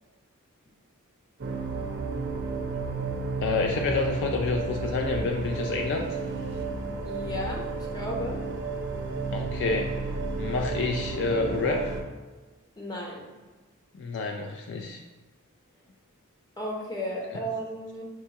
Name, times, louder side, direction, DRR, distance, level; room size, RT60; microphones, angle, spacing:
sound 1, 1.4-12.0, right 4 dB, 50° right, 0.5 m, -32 dB
voice 1, 3.4-6.1 9.3-10.0 10.4-11.9 14.0-15.0, left 3 dB, 55° left, 2 dB, 0.4 m, -28 dB
voice 2, 7.0-8.4 12.8-13.3 16.6-18.0, equal, 20° left, -3 dB, 0.8 m, -34 dB
6.4 x 2.3 x 2.8 m, 1.3 s
head